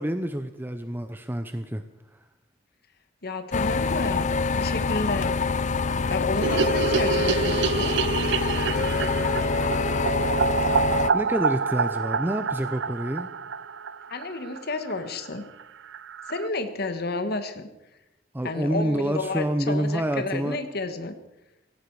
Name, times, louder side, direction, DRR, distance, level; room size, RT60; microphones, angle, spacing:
voice 1, 0.0-1.8 10.0-10.1 11.1-13.3 18.3-20.6, right 1 dB, 10° right, 9 dB, 0.6 m, -28 dB
voice 2, 3.2-5.3 6.1-7.9 14.1-15.5 16.3-17.7 18.4-21.1, left 2 dB, 55° left, 8 dB, 1.5 m, -31 dB
sound 1, 3.5-11.1, left 4 dB, 40° left, 0.6 m, -25 dB
sound 2, 6.4-14.6 14.9-15.0 15.2-15.3 15.6-15.7 15.9-16.5, right 5 dB, 65° right, 0.5 m, -27 dB
17.5 x 16.0 x 4.8 m, 0.94 s
head